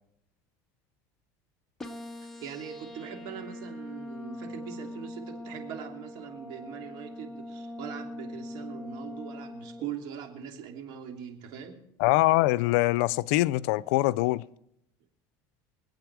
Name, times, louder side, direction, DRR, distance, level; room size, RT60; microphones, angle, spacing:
sound 1, 1.8-9.8, left 1 dB, 5° left, 1.8 m, -42 dB
voice 1, 2.2-11.8, right 8 dB, 65° right, 3.1 m, -41 dB
voice 2, 12.0-14.4, left 18 dB, 80° left, 0.5 m, -23 dB
25.0 x 8.5 x 4.8 m
supercardioid pair, 110°, 8 cm